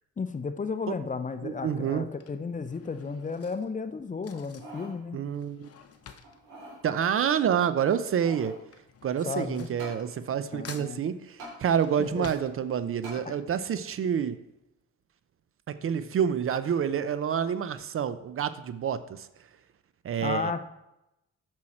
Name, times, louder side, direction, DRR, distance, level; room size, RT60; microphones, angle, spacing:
voice 1, 0.2-5.2 9.3-9.7 10.5-11.0 12.0-12.3 13.3-13.4 20.2-20.7, left 4 dB, 25° left, 10 dB, 0.6 m, -33 dB
Drawer open or close / Cutlery silverware, 0.6-1.0 1.9-7.8 8.0-10.4 10.6-13.2 13.6-13.7 13.9-14.0, left 7 dB, 50° left, 0.9 m, -51 dB
voice 2, 1.4-2.1 5.1-5.7 6.8-8.6 9.0-14.4 15.7-19.3 20.0-20.5, right 8 dB, 45° right, 13 dB, 0.5 m, -28 dB
sound 1, 4.3-5.0 5.4-5.5 6.2-6.8 7.8-8.6 9.8-10.0 11.4-11.6 13.0-13.2 13.8-13.9, right 1 dB, 90° right, 3.6 m, -44 dB
8.5 x 6.3 x 4.3 m, 0.90 s
cardioid pair, 90°, 30 cm